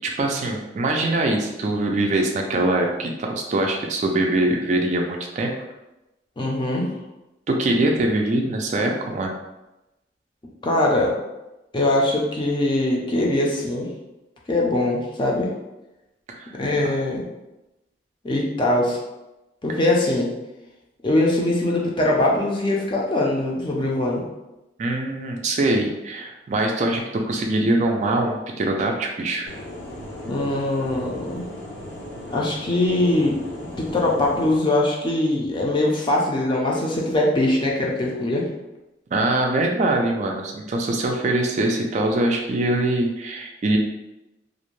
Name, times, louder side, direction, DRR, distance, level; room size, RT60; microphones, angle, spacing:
voice 1, 0.0-5.5 7.5-9.3 16.3-16.5 24.8-29.4 39.1-43.8, right 2 dB, 40° right, 2 dB, 0.3 m, -23 dB
voice 2, 6.4-6.9 10.6-11.1 11.7-13.9 14.5-15.5 16.6-17.2 18.2-19.0 19.6-20.3 21.0-24.2 30.2-31.4 32.3-33.4 33.8-38.4, left 1 dB, 25° left, -2 dB, 0.4 m, -22 dB
sound 1, 29.5-34.6, left 1 dB, 85° left, 0.6 m, -37 dB
2.5 x 2.1 x 3.0 m, 0.97 s
head